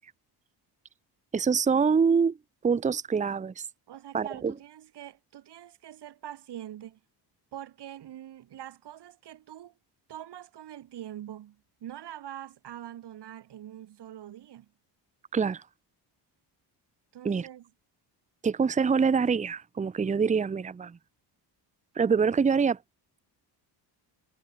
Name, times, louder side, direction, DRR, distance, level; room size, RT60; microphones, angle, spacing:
voice 1, 1.3-2.4 2.6-3.6 4.1-4.5 15.3-15.6 17.2-17.5 18.4-21.0 22.0-22.8, right 5 dB, 15° right, 0.7 m, -25 dB
voice 2, 3.9-7.0 7.5-9.7 10.1-14.7 17.1-17.7, right 11 dB, 65° right, 6.2 m, -44 dB
cardioid pair, 140°, 44 cm